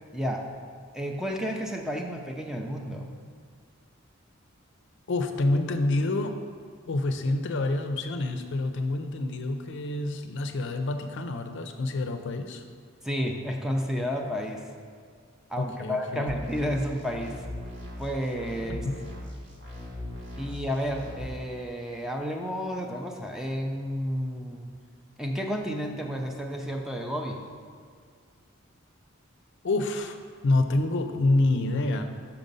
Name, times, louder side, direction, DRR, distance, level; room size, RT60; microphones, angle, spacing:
voice 1, 0.1-0.5 0.9-3.1 13.0-14.6 15.5-17.4 18.0-18.9 20.4-24.7 25.2-27.4, equal, 5° right, 2 dB, 0.5 m, -31 dB
voice 2, 5.1-6.4 6.9-12.6 15.6-16.3 18.7-19.0 29.6-30.2 30.4-32.0, left 2 dB, 60° left, 7 dB, 0.5 m, -27 dB
sound 1, 16.3-21.3, left 1 dB, 60° right, 1.7 m, -39 dB
5.8 x 5.0 x 5.4 m, 2.1 s
head